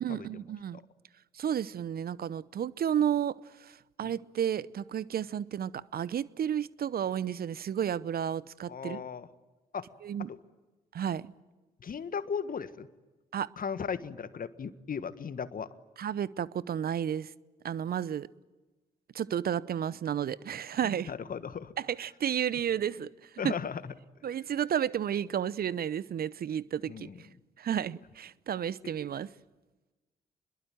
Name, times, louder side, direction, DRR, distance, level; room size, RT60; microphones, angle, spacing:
voice 1, 0.0-0.8 1.3-9.0 10.0-10.3 10.9-11.3 13.3-13.5 16.0-17.3 17.6-18.3 19.1-21.1 21.8-23.1 23.4-23.5 24.2-27.1 27.6-29.3, right 9 dB, 55° right, 0.8 m, -32 dB
voice 2, 8.7-9.3 9.7-9.9 10.3-10.4 11.8-12.9 13.6-15.7 21.1-21.7 23.4-23.9 26.9-27.2, left 6 dB, 50° left, 1.6 m, -36 dB
26.0 x 22.0 x 9.2 m
hypercardioid pair, 40°, 19 cm